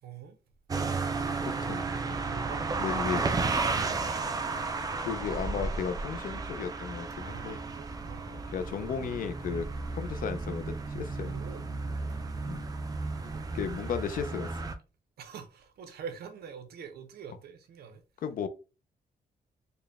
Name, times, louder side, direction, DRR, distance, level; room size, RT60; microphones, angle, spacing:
voice 1, 0.0-0.4 2.1-4.8 7.1-8.4 11.3-11.7 13.0-13.8 15.2-18.0, right 6 dB, 90° right, 0.7 m, -46 dB
sound 1, 0.7-14.7, right 3 dB, 25° right, 0.4 m, -33 dB
voice 2, 1.4-1.8 2.8-3.2 5.1-7.6 8.3-9.7 9.9-11.3 12.4-12.6 13.5-14.5 18.2-18.5, left 7 dB, 60° left, 0.5 m, -34 dB
4.0 x 2.2 x 3.4 m
wide cardioid pair, 145°, 16 cm